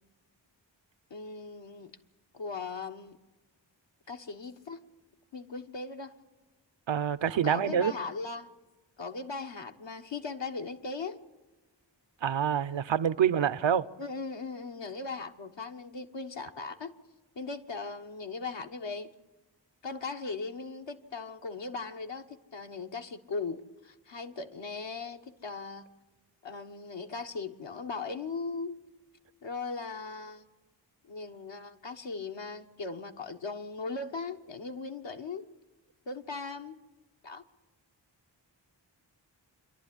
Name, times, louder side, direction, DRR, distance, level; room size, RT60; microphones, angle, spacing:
voice 1, 1.1-2.0 2.3-3.2 4.1-4.8 5.3-6.1 7.4-8.5 9.0-11.2 14.0-17.0 17.3-19.1 19.8-25.9 26.4-28.8 29.4-30.4 31.1-35.5 36.1-36.8 37.2-37.4, left 4 dB, 70° left, 1.3 m, -38 dB
voice 2, 6.9-7.9 12.2-13.9, right 8 dB, 75° right, 0.7 m, -26 dB
27.5 x 11.5 x 9.9 m
cardioid pair, 40°, 45 cm